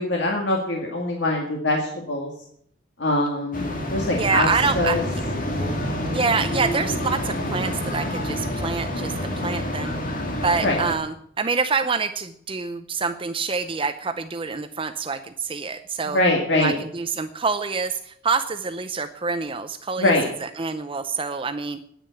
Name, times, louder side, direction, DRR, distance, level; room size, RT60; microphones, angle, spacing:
voice 1, 0.0-2.3 3.0-4.5 4.7-5.0 10.6-10.8 16.1-16.7 20.0-20.2, left 2 dB, 65° left, 0 dB, 2.1 m, -23 dB
sound 1, 3.5-11.0, left 1 dB, 45° left, 2.4 m, -28 dB
voice 2, 4.2-5.2 6.0-9.9 10.4-16.2 16.5-20.1 20.4-21.8, right 4 dB, 30° right, 9 dB, 0.6 m, -26 dB
9.9 x 9.6 x 9.6 m, 0.68 s
head